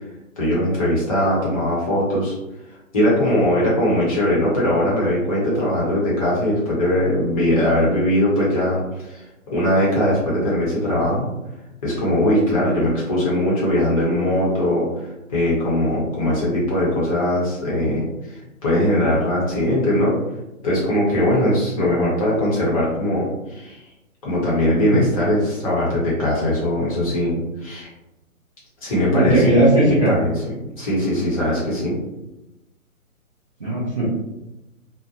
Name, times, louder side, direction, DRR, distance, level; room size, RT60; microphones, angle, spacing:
voice 1, 0.4-2.3 2.9-9.2 9.5-11.3 11.8-15.0 15.3-18.0 18.6-20.2 20.6-23.8 24.2-27.9 28.8-29.5 29.8-30.3 30.8-32.0, left 1 dB, 25° left, -6 dB, 0.8 m, -20 dB
voice 2, 29.1-30.1 33.6-34.1, right 1 dB, 25° right, -10 dB, 0.4 m, -17 dB
2.6 x 2.2 x 2.7 m, 0.95 s
hypercardioid pair, 145°, 42 cm